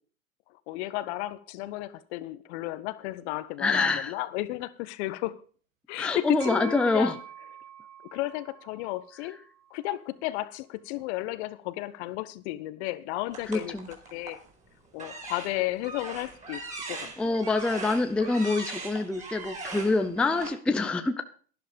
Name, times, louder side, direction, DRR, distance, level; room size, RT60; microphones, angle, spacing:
voice 1, 0.7-5.3 5.9-7.2 8.1-9.4 9.7-14.4 14.9-16.6 16.9-17.4, left 17 dB, 50° left, 1.2 m, -33 dB
voice 2, 3.6-4.1 6.0-7.2 13.5-13.9 17.2-21.2, left 3 dB, ahead, 0.6 m, -26 dB
sound 1, 6.4-10.2, right 10 dB, 45° right, 2.7 m, -46 dB
sound 2, 13.3-14.5 14.9-20.5, right 3 dB, 15° right, 4.5 m, -40 dB
12.0 x 11.5 x 5.2 m
hypercardioid pair, 120°, 43 cm